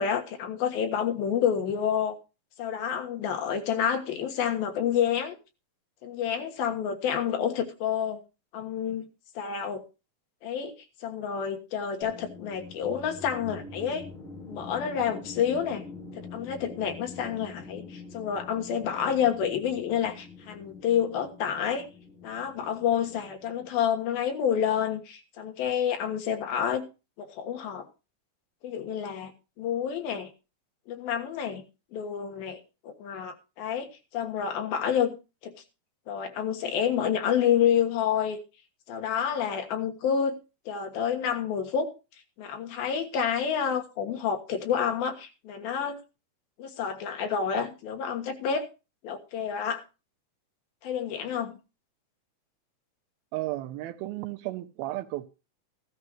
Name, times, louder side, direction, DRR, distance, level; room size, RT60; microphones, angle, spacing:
voice 1, 0.0-2.2 2.6-5.4 6.0-8.2 8.5-9.1 9.3-9.8 10.4-10.7 11.0-14.1 14.5-15.8 16.1-21.9 22.2-26.8 27.2-27.9 28.6-29.3 29.6-30.3 30.9-31.6 31.9-35.2 35.4-35.5 36.1-38.4 38.9-40.4 40.7-41.9 42.4-46.0 46.6-48.7 49.0-49.8 50.8-51.6, left 8 dB, 80° left, 3.3 m, -29 dB
sound 1, 12.0-24.2, left 4 dB, 60° left, 7.8 m, -45 dB
voice 2, 53.3-55.3, right 17 dB, 90° right, 2.7 m, -33 dB
14.5 x 13.5 x 3.1 m
omnidirectional pair, 4.2 m